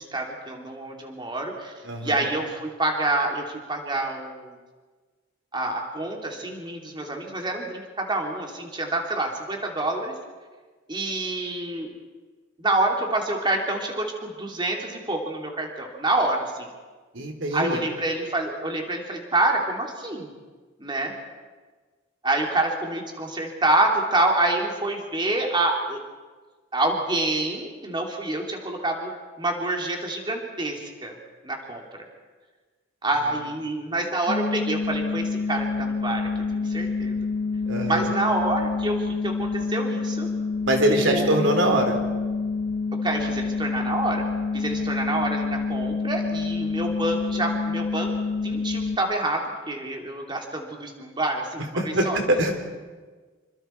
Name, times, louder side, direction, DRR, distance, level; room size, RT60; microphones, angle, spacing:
voice 1, 0.0-1.7 2.0-4.5 5.5-10.1 10.9-11.9 12.6-16.7 17.5-20.3 20.8-21.1 22.2-26.0 26.7-29.1 29.4-31.1 31.4-31.8 33.0-37.2 37.9-40.3 40.9-41.6 43.0-44.2 44.5-48.1 48.4-51.6 52.0-52.2, right 2 dB, 25° right, 1 dB, 3.1 m, -27 dB
voice 2, 1.8-2.3 17.1-17.8 37.6-38.1 40.6-42.0 44.7-44.9 51.8-52.5, right 1 dB, 70° right, 4 dB, 3.4 m, -23 dB
sound 1, 34.3-49.0, left 4 dB, 55° left, 2.2 m, -27 dB
27.0 x 25.0 x 4.6 m, 1.4 s
head